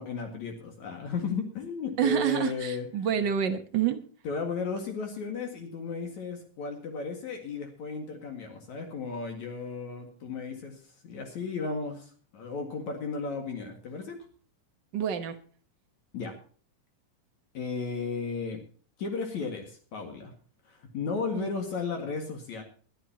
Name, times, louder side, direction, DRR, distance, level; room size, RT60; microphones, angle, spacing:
voice 1, 0.0-2.9 4.2-14.2 16.1-16.4 17.5-18.6 19.0-20.3 20.7-22.6, left 4 dB, 60° left, 3 dB, 3.1 m, -34 dB
voice 2, 2.0-4.0 14.9-15.4 21.3-21.5, right 9 dB, 80° right, 7 dB, 1.0 m, -28 dB
22.0 x 12.0 x 2.8 m, 0.43 s
omnidirectional pair, 3.8 m